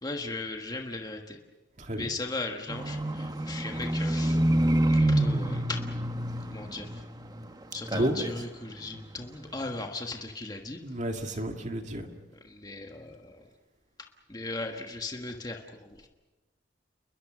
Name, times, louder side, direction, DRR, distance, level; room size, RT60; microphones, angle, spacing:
voice 1, 0.0-1.4 2.0-4.4 4.9-5.8 6.5-6.9 7.7-10.8 12.5-13.4 14.3-16.1, left 2 dB, 20° left, 3 dB, 1.5 m, -37 dB
voice 2, 1.8-2.1 7.9-8.2 10.8-12.1, right 1 dB, 40° right, 4 dB, 2.2 m, -31 dB
Livestock farm animals working animals, 2.7-7.5 7.7-8.4 8.9-9.0, right 1 dB, 20° right, 1.3 m, -27 dB
29.5 x 22.0 x 6.3 m, 1.2 s
head